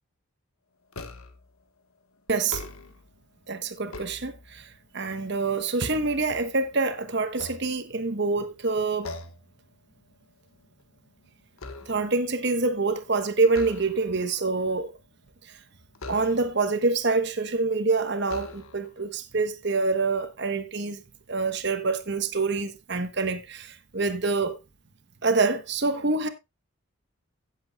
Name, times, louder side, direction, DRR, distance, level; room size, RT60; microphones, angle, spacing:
sound 1, 0.9-1.5 2.3-3.1 3.7-4.8 5.3-6.8 7.3-8.3 9.0-9.5 9.9-10.2 10.5-12.2 13.5-14.3 15.9-16.7 17.5-17.6 18.2-19.0, left 2 dB, 80° left, 1.4 m, -42 dB
voice 1, 2.3-2.6 3.5-4.6 4.9-9.1 11.9-14.9 16.1-21.0 21.3-24.6 25.2-26.3, right 3 dB, 50° right, 1.1 m, -26 dB
16.5 x 7.8 x 2.4 m
head